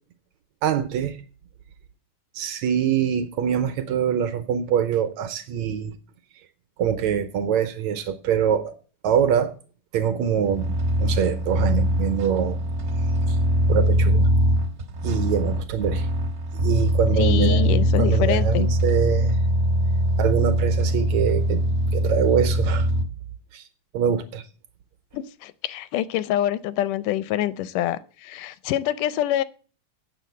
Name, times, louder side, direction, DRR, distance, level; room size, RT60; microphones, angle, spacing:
voice 1, 0.6-1.2 2.4-6.0 6.8-8.7 9.0-9.5 9.9-10.7 11.0-12.6 13.3-13.4 13.7-14.3 15.0-16.1 16.6-19.4 20.2-21.6 21.9-22.9 23.5-23.6 23.9-24.4, right 8 dB, 75° right, 1.8 m, -24 dB
sound 1, 10.4-23.0, equal, 55° right, 0.9 m, -22 dB
voice 2, 17.2-18.7 25.1-29.4, left 12 dB, 80° left, 2.1 m, -26 dB
8.5 x 6.9 x 8.2 m
omnidirectional pair, 3.7 m